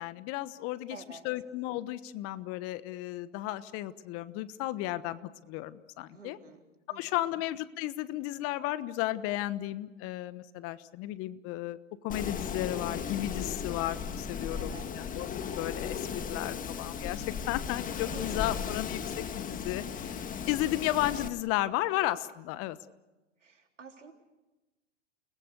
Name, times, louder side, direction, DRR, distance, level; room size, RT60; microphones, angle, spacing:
voice 1, 0.0-6.4 6.9-11.8 12.0-15.3 15.6-16.0 16.3-20.2 20.5-22.8, left 15 dB, 40° left, 15 dB, 1.2 m, -34 dB
voice 2, 0.9-1.3 6.1-6.6 6.9-7.3 14.5-14.9 18.0-18.6 23.4-24.1, right 5 dB, 85° right, 4 dB, 3.7 m, -49 dB
Wind, 12.1-21.3, left 7 dB, 20° left, 1.8 m, -36 dB
30.0 x 20.5 x 6.7 m, 1.1 s
hypercardioid pair, 105°, 36 cm